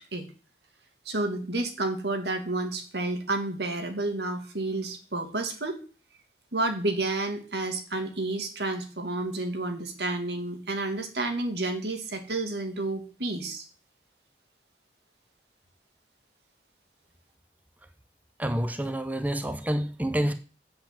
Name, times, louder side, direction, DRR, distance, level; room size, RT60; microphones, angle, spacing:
voice 1, 1.1-5.8 6.5-13.6, right 2 dB, 75° right, 2.4 m, -30 dB
voice 2, 18.4-20.3, right 1 dB, 10° right, 0.8 m, -28 dB
8.4 x 7.7 x 9.0 m
head